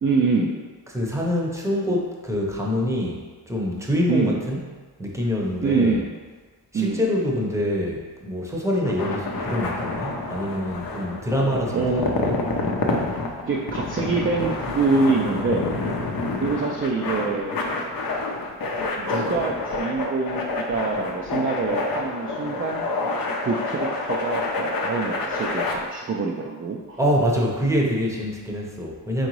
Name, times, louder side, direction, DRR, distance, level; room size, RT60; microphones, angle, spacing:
voice 1, 0.0-0.6 4.1-4.4 5.6-6.1 6.7-7.0 11.7-12.4 13.4-15.8 16.4-17.6 19.0-22.9 23.4-27.0, right 4 dB, 35° right, -1 dB, 0.4 m, -25 dB
voice 2, 0.9-4.6 5.0-6.0 6.7-12.3 27.0-29.3, equal, 5° right, -2 dB, 0.8 m, -25 dB
sound 1, 8.7-25.7, left 2 dB, 60° left, 0.7 m, -28 dB
3.9 x 3.5 x 3.1 m, 1.4 s
cardioid pair, 75°, 39 cm